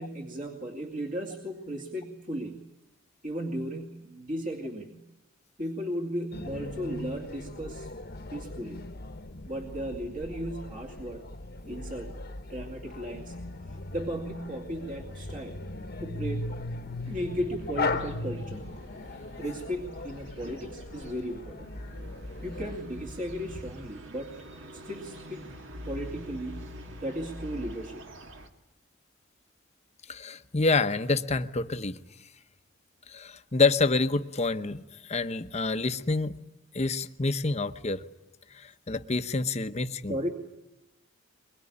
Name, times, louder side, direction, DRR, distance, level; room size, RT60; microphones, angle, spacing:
voice 1, 0.0-2.7 3.2-5.1 5.6-7.9 8.3-8.8 9.4-11.2 11.6-12.1 12.5-13.4 13.7-15.6 16.0-16.5 17.1-18.7 19.4-21.7 22.4-24.3 24.7-25.5 25.8-26.7 27.0-28.1 40.1-40.3, equal, 40° right, 2 dB, 2.4 m, -35 dB
sound 1, 6.3-22.8, left 3 dB, 50° left, 1.2 m, -38 dB
sound 2, 17.0-28.5, equal, 65° right, 2.1 m, -45 dB
voice 2, 30.1-31.9 33.1-34.8 35.1-36.4 36.7-38.0 38.9-40.1, left 3 dB, 35° left, 10 dB, 0.9 m, -27 dB
22.5 x 22.5 x 10.0 m, 0.97 s
head